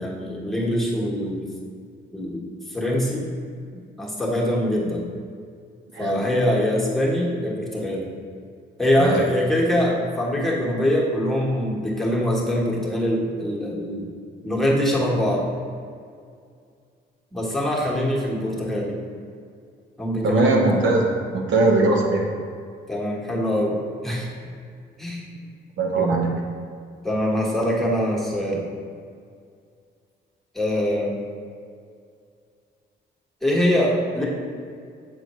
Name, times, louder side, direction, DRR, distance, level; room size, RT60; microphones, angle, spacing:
voice 1, 0.0-1.5 2.1-3.3 3.7-5.0 6.0-8.1 8.8-14.1 14.4-15.5 17.3-19.0 20.0-20.6 22.9-23.8 24.0-24.3 25.0-25.2 25.9-26.0 27.0-28.6 30.5-31.1 33.4-34.3, equal, ahead, -4 dB, 1.4 m, -23 dB
voice 2, 20.2-22.2 25.8-26.3, right 3 dB, 70° right, 0 dB, 0.9 m, -20 dB
7.4 x 4.2 x 3.1 m, 2.2 s
cardioid pair, 90°, 20 cm